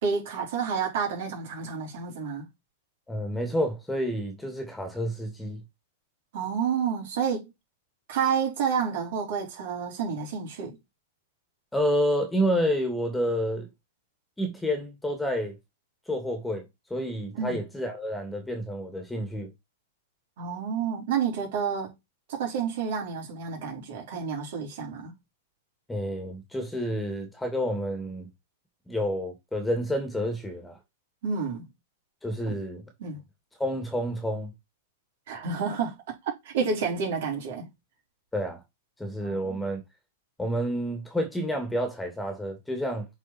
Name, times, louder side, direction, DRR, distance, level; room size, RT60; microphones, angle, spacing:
voice 1, 0.0-2.4 6.3-7.5 8.1-10.8 17.3-17.6 20.4-21.9 22.3-25.1 31.2-31.6 32.5-32.6 33.0-33.2 35.3-36.1 36.4-37.7 39.2-39.6, right 6 dB, 60° right, 4.7 m, -29 dB
voice 2, 3.1-5.6 11.7-13.7 14.4-15.5 16.1-19.5 25.9-28.3 28.9-30.8 32.2-32.8 33.6-34.5 38.3-38.6 39.0-39.8 40.4-43.1, equal, 5° left, 2.4 m, -29 dB
7.7 x 4.7 x 4.5 m
hypercardioid pair, 120°, 0 cm